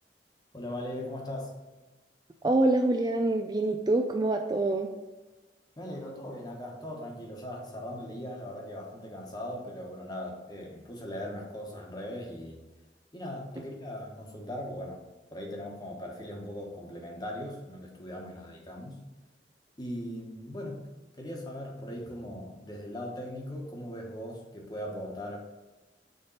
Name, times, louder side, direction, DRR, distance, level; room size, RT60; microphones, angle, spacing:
voice 1, 0.5-1.5 5.8-12.6 13.1-15.0 15.3-19.0 19.8-20.9 21.2-25.4, left 1 dB, 20° left, -1 dB, 1.2 m, -39 dB
voice 2, 2.4-4.9, right 2 dB, 20° right, 4 dB, 0.3 m, -25 dB
6.5 x 3.4 x 5.6 m, 1.1 s
head